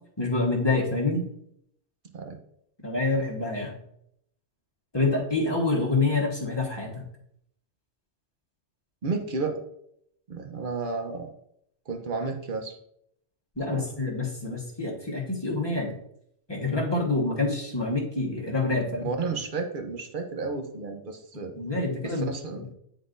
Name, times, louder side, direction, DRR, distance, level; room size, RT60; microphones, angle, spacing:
voice 1, 0.2-1.2 2.8-3.8 4.9-7.0 13.6-15.9 16.5-19.1 21.5-22.7, left 3 dB, 25° left, -2 dB, 1.3 m, -27 dB
voice 2, 9.0-9.6 10.3-11.3 11.9-12.7 13.7-13.9 19.0-21.5 22.0-22.6, right 4 dB, 50° right, 5 dB, 0.9 m, -32 dB
9.8 x 3.8 x 2.5 m, 0.72 s
omnidirectional pair, 1.1 m